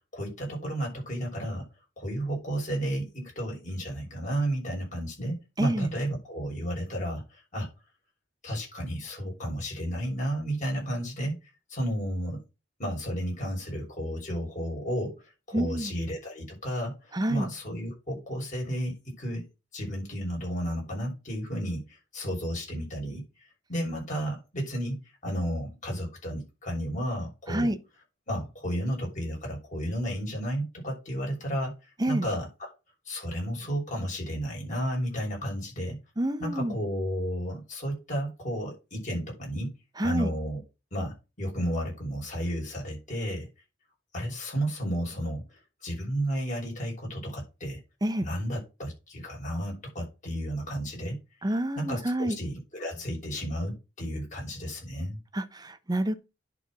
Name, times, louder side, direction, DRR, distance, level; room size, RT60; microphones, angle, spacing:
voice 1, 0.0-1.7 2.0-7.7 8.4-11.4 11.7-12.4 12.8-19.4 19.7-27.7 28.3-32.7 33.0-36.0 36.4-39.7 40.0-40.6 40.9-43.5 44.1-47.8 48.2-51.2 51.8-55.2, equal, 45° left, 6.5 m, -32 dB
voice 2, 5.6-5.9 15.5-15.9 17.1-17.5 27.5-27.8 32.0-32.3 36.2-36.7 40.0-40.3 48.0-48.3 51.4-52.4 55.3-56.1, right 1 dB, 20° right, 1.0 m, -28 dB
10.5 x 4.6 x 6.1 m
head